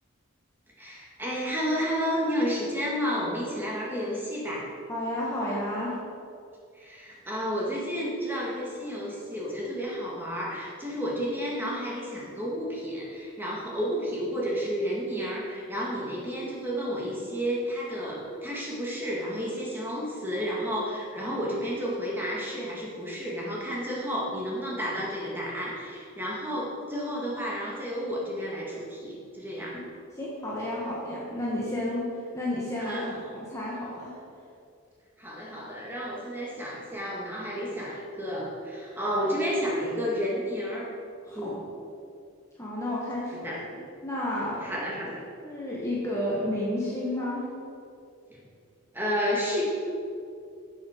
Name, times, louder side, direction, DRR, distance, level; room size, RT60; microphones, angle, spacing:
voice 1, 0.8-4.7 6.8-29.8 32.8-33.2 35.2-40.9 41.3-41.6 43.3-43.6 44.6-45.2 48.3-48.4 48.9-49.6, equal, 10° right, -5 dB, 1.9 m, -31 dB
voice 2, 4.9-6.0 30.1-34.1 41.3-41.6 42.6-43.5 44.0-44.7 45.4-47.4, left 1 dB, 15° left, -6 dB, 1.4 m, -31 dB
11.0 x 7.3 x 5.1 m, 2.4 s
head